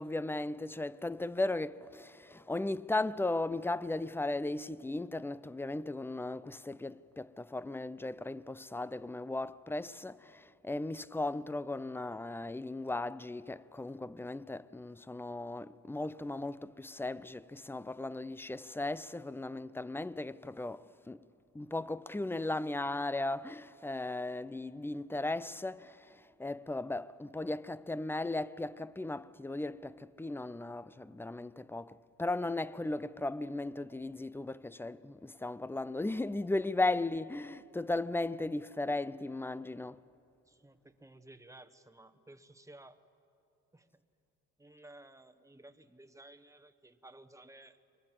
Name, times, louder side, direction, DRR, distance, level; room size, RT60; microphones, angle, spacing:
voice 1, 0.0-21.3 21.5-40.1, left 2 dB, 5° left, 0.5 m, -36 dB
voice 2, 40.5-43.0 43.7-44.0 44.6-47.8, right 1 dB, 10° right, 1.2 m, -55 dB
30.0 x 24.0 x 7.5 m
cardioid pair, 90°, 30 cm